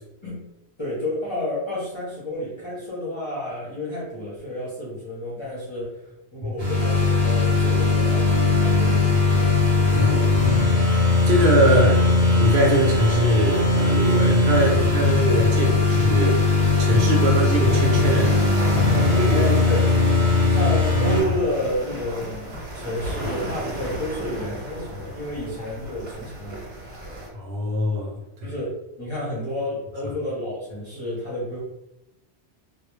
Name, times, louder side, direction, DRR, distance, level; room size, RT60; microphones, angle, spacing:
voice 1, 0.8-9.5 11.6-11.8 19.3-19.9 20.5-26.6 28.4-31.6, left 1 dB, 30° left, -7 dB, 0.6 m, -30 dB
sound 1, 6.6-21.2, left 3 dB, 40° right, 0.6 m, -19 dB
voice 2, 9.9-10.7 11.3-11.9 12.3-16.5 16.8-19.5 27.3-28.1 28.4-28.5 30.0-30.1, equal, 70° right, -1 dB, 0.8 m, -22 dB
sound 2, 10.2-27.3, right 1 dB, 90° right, 1.1 m, -35 dB
2.2 x 2.1 x 3.0 m, 0.89 s
omnidirectional pair, 1.1 m